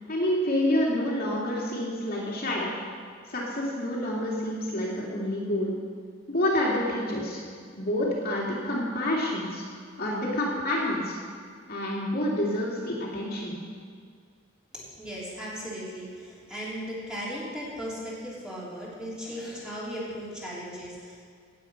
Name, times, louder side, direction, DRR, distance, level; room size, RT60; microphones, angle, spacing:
voice 1, 0.1-2.7 3.3-5.7 6.3-7.4 7.7-9.6 10.0-11.1 11.7-13.6, left 1 dB, 50° left, -4 dB, 2.5 m, -28 dB
voice 2, 14.7-21.2, equal, 5° right, -8 dB, 3.8 m, -37 dB
17.0 x 8.0 x 5.8 m, 2.1 s
head